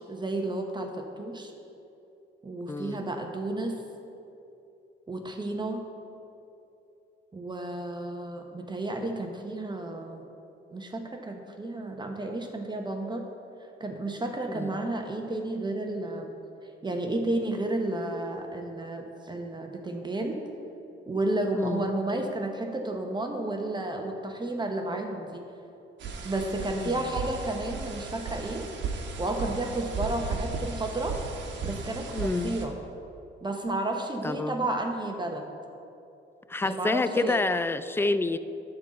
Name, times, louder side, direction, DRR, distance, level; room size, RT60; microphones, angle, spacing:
voice 1, 0.0-1.5 2.4-3.8 5.1-5.8 7.3-10.2 10.7-13.2 13.8-16.3 16.8-20.4 21.1-25.4 26.2-28.7 29.2-31.2 31.6-32.7 33.4-35.5 36.6-37.4, right 2 dB, 20° right, 3 dB, 0.9 m, -32 dB
voice 2, 2.7-3.0 14.6-14.8 21.5-21.9 26.8-26.9 32.1-32.6 34.2-34.6 36.5-38.4, left 3 dB, 10° left, 13 dB, 0.3 m, -28 dB
sound 1, 26.0-32.7, right 4 dB, 65° right, 1.2 m, -35 dB
11.0 x 3.9 x 7.4 m, 2.8 s
cardioid pair, 90°, 20 cm